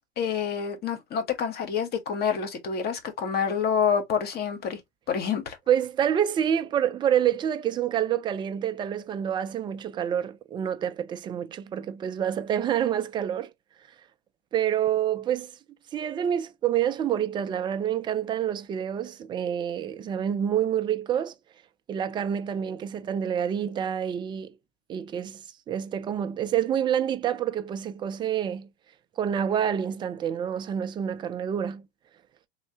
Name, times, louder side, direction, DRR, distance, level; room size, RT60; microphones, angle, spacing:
voice 1, 0.2-4.8 5.1-5.6, left 7 dB, 35° left, 1.1 m, -27 dB
voice 2, 5.7-13.5 14.5-15.5 15.9-21.3 21.9-24.5 24.9-28.7 29.2-31.9, right 9 dB, 15° right, 0.3 m, -27 dB
3.1 x 2.8 x 2.7 m
hypercardioid pair, 110°, 29 cm